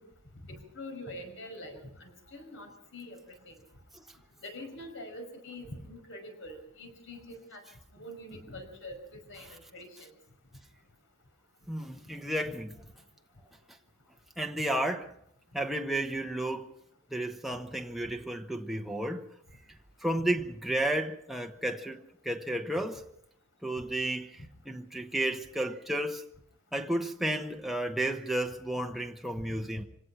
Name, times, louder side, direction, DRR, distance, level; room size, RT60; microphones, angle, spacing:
voice 1, 0.4-3.2 3.5-3.6 4.4-7.6 7.9-9.0 9.3-10.1 20.2-20.3, left 1 dB, 65° left, 5.5 m, -44 dB
voice 2, 11.7-12.8 14.4-15.1 15.5-16.7 17.1-19.3 20.0-23.1 23.6-26.2 26.7-29.8, right 1 dB, ahead, 1.0 m, -32 dB
26.0 x 18.0 x 5.8 m
head